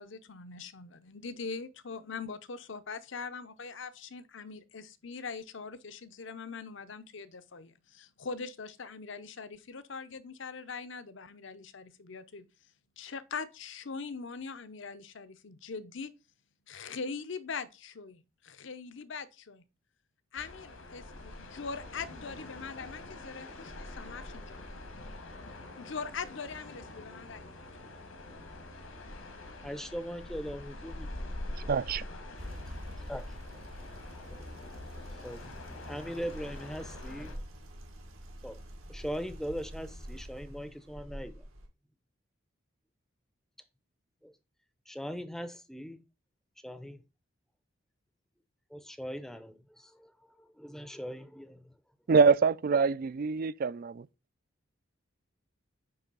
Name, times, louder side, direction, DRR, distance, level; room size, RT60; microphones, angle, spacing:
voice 1, 0.0-12.5 13.0-16.1 16.7-19.6 20.3-24.6 25.8-27.5, left 5 dB, 60° left, 0.7 m, -42 dB
sound 1, 20.3-37.4, left 1 dB, 80° left, 1.8 m, -45 dB
voice 2, 29.6-31.2 31.9-32.3 33.1-33.4 34.1-34.4 35.1-37.4 38.4-38.6 38.9-41.4 44.2-44.3 44.9-46.0 46.6-47.0 48.7-50.1 50.4-51.7, equal, ahead, 0.6 m, -40 dB
voice 3, 31.7-32.0 52.1-54.0, right 5 dB, 45° right, 0.3 m, -25 dB
sound 2, 32.4-41.7, equal, 80° right, 1.9 m, -47 dB
9.6 x 3.3 x 5.3 m
head